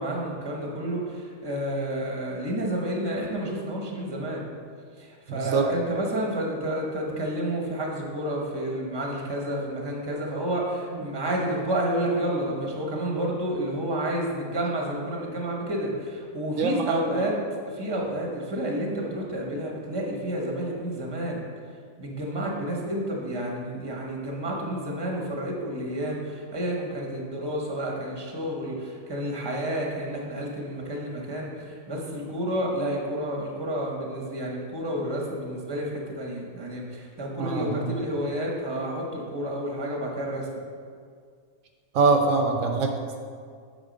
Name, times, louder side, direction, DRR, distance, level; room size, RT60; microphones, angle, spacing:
voice 1, 0.0-4.4 5.0-17.4 17.7-21.4 22.0-40.6, right 1 dB, 20° right, -1 dB, 1.1 m, -30 dB
voice 2, 5.3-5.7 16.6-17.3 37.4-37.9 41.9-43.2, right 4 dB, 75° right, 3 dB, 1.0 m, -24 dB
8.7 x 4.1 x 5.2 m, 2.1 s
omnidirectional pair, 1.4 m